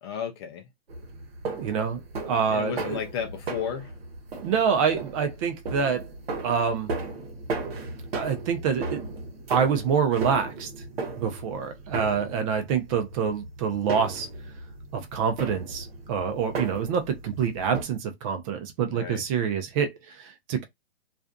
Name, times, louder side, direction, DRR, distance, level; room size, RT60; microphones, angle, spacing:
voice 1, 0.0-0.6 2.5-3.9 18.9-19.2, left 7 dB, 25° left, 0.4 m, -33 dB
sound 1, 0.9-17.8, right 3 dB, 65° right, 1.0 m, -36 dB
voice 2, 1.6-2.0 2.3-3.0 4.4-6.1 6.4-6.9 8.1-9.1 9.5-10.7 11.2-14.3 14.9-20.6, right 6 dB, 30° right, 0.6 m, -26 dB
2.5 x 2.4 x 2.3 m
hypercardioid pair, 125°, 32 cm